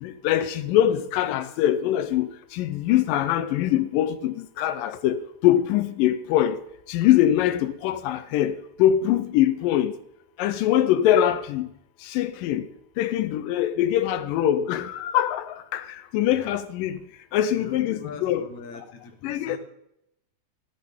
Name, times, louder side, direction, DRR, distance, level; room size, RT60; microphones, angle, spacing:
voice 1, 0.0-6.6 6.9-10.0 10.4-11.7 12.0-12.7 13.0-17.0 17.3-18.5 19.2-19.6, left 11 dB, 80° left, 2.3 m, -23 dB
voice 2, 17.6-19.6, left 4 dB, 65° left, 2.6 m, -41 dB
13.0 x 12.5 x 3.7 m
omnidirectional pair, 3.9 m